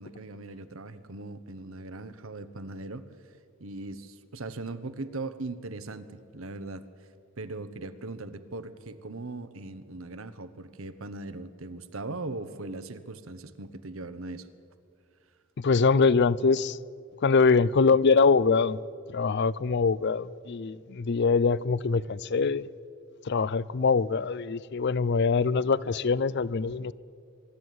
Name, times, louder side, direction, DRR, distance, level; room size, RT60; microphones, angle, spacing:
voice 1, 0.0-6.9 7.4-14.5, right 2 dB, 80° right, 1.1 m, -39 dB
voice 2, 15.6-16.8 17.2-18.8 19.1-22.7 23.2-26.9, left 4 dB, 55° left, 0.5 m, -23 dB
23.5 x 12.0 x 9.4 m
head